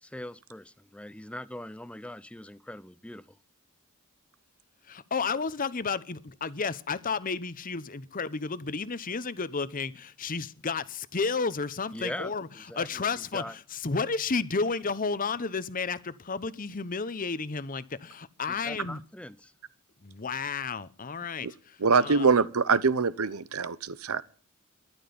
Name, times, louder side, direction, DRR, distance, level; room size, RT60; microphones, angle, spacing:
voice 1, 0.0-3.4 11.9-13.6 18.4-19.5, left 1 dB, 5° left, 0.7 m, -41 dB
voice 2, 4.9-12.5 12.7-19.0 20.0-21.5 22.0-22.3, left 4 dB, 40° left, 0.9 m, -32 dB
voice 3, 21.8-24.2, right 5 dB, 85° right, 0.9 m, -24 dB
13.0 x 11.5 x 6.9 m
head